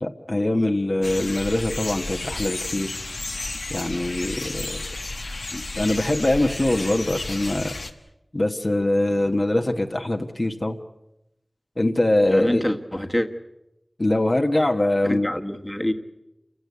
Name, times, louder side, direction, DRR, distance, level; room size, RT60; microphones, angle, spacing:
voice 1, 0.0-3.0 3.7-4.8 5.5-7.7 8.3-10.8 11.8-12.6 14.0-15.3, left 1 dB, 45° left, 3 dB, 1.3 m, -23 dB
sound 1, 1.0-7.9, left 2 dB, 80° left, 1.4 m, -32 dB
voice 2, 12.2-13.3 15.0-15.9, left 1 dB, 20° left, 5 dB, 1.5 m, -26 dB
28.5 x 16.5 x 8.4 m, 0.93 s
wide cardioid pair, 60°, 0 cm